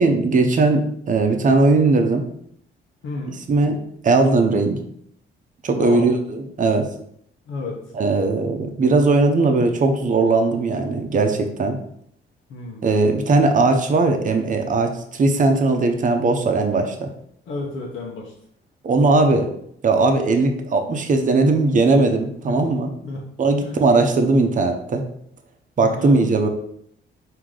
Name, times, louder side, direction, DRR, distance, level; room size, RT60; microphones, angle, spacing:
voice 1, 0.0-2.2 3.3-4.8 5.6-6.9 7.9-11.8 12.8-17.1 18.8-19.5 19.8-22.9 23.4-25.0 25.8-26.5, right 3 dB, 40° right, 5 dB, 0.7 m, -18 dB
voice 2, 3.0-3.4 5.8-6.1 7.5-7.8 12.5-12.9 17.5-18.3 22.5-22.7 23.0-23.2 23.6-23.8 25.8-26.2, left 2 dB, 80° left, -2 dB, 0.9 m, -31 dB
4.7 x 2.8 x 3.7 m, 0.70 s
cardioid pair, 90°, 20 cm